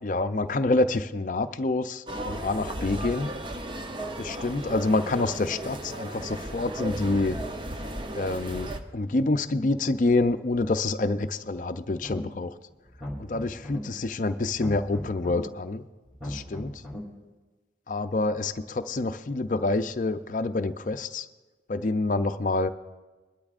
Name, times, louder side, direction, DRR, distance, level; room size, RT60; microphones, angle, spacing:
voice 1, 0.0-3.3 4.2-7.4 8.1-12.5 13.2-15.8 16.2-16.8 17.9-21.3 21.7-22.7, left 2 dB, 45° left, 9 dB, 0.5 m, -27 dB
sound 1, 2.1-8.8, right 1 dB, 25° right, 0.6 m, -35 dB
sound 2, 12.0-12.5 12.9-13.8 14.5-15.4 16.1-17.0, equal, 5° right, 2.7 m, -38 dB
22.0 x 12.0 x 2.5 m, 1.2 s
head